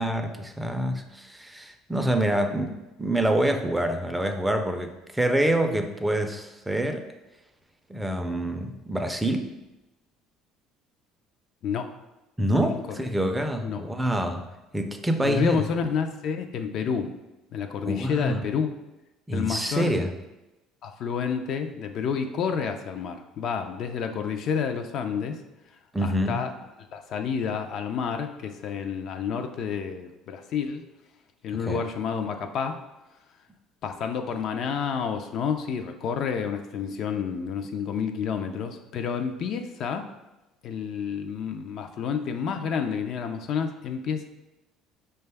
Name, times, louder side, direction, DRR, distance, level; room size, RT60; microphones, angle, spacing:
voice 1, 0.0-7.1 7.9-9.5 12.4-14.4 14.7-15.7 17.8-18.4 19.3-20.1 25.9-26.4 31.5-31.8, right 1 dB, 10° right, 5 dB, 0.4 m, -26 dB
voice 2, 12.7-13.1 13.6-13.8 15.2-17.1 17.5-18.7 19.3-19.9 20.8-25.4 26.0-26.5 26.9-30.9 31.4-32.8 33.8-40.1 40.6-44.3, left 6 dB, 60° left, 6 dB, 0.4 m, -29 dB
5.0 x 2.2 x 3.3 m, 1.0 s
supercardioid pair, 95°, 0 cm